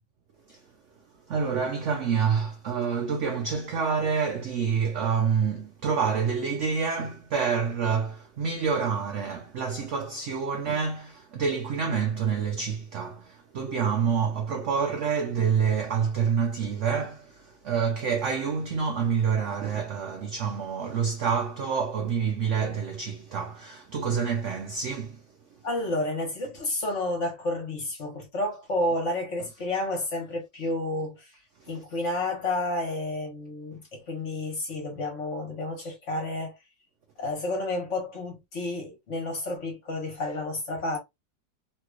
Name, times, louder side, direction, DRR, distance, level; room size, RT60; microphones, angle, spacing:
voice 1, 1.3-25.2 31.6-31.8, right 6 dB, 80° right, 0.6 m, -27 dB
voice 2, 25.6-31.3 31.7-36.5 37.2-41.0, left 2 dB, 45° left, 1.5 m, -30 dB
3.3 x 3.1 x 2.3 m
omnidirectional pair, 2.0 m